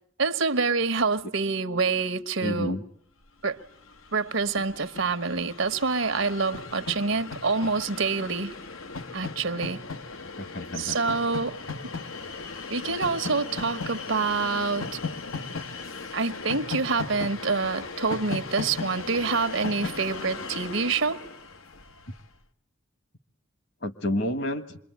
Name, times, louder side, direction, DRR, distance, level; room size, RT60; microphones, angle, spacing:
voice 1, 0.2-2.8 3.4-3.6 4.1-8.5 9.1-9.8 10.8-11.6 12.7-14.9 16.1-21.2, right 4 dB, 75° right, 1.2 m, -26 dB
voice 2, 2.4-2.8 10.4-11.2 23.8-24.8, left 1 dB, 55° left, 1.6 m, -30 dB
Train, 3.6-3.7 3.8-22.2, left 4 dB, 85° left, 1.3 m, -37 dB
26.5 x 22.5 x 9.2 m
head